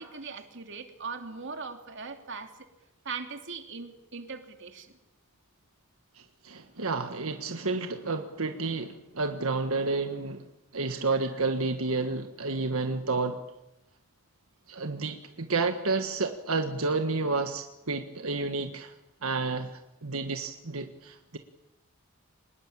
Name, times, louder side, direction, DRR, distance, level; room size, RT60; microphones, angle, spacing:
voice 1, 0.0-2.5 3.0-4.9 10.9-11.0, right 4 dB, 60° right, 5 dB, 2.9 m, -40 dB
voice 2, 6.1-10.5 10.7-13.4 14.7-18.9 19.2-21.4, right 3 dB, 90° right, 6 dB, 1.5 m, -30 dB
25.0 x 20.5 x 8.7 m, 0.90 s
head